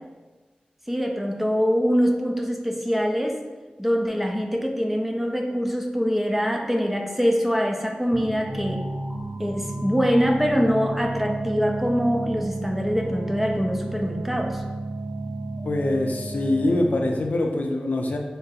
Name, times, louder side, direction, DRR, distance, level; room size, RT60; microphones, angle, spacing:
voice 1, 0.9-3.4 3.8-8.8 9.4-14.6, equal, 5° right, 2 dB, 0.5 m, -24 dB
sound 1, 8.1-17.4, right 2 dB, 60° right, 0.7 m, -32 dB
voice 2, 15.6-18.2, left 2 dB, 70° left, 2 dB, 0.4 m, -24 dB
3.7 x 2.7 x 3.9 m, 1.3 s
wide cardioid pair, 75°, 3 cm